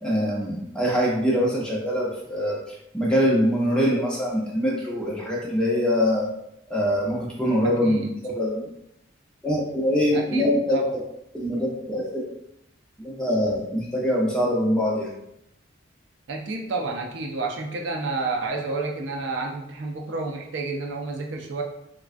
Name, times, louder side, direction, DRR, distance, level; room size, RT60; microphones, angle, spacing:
voice 1, 0.0-2.6 2.9-6.3 6.7-8.5 9.4-11.0 11.3-12.2 13.0-15.1, equal, 5° left, -4 dB, 0.6 m, -23 dB
voice 2, 7.6-8.1 10.1-10.9 16.3-21.6, right 3 dB, 65° right, 1 dB, 0.4 m, -30 dB
3.6 x 2.2 x 2.4 m, 0.80 s
head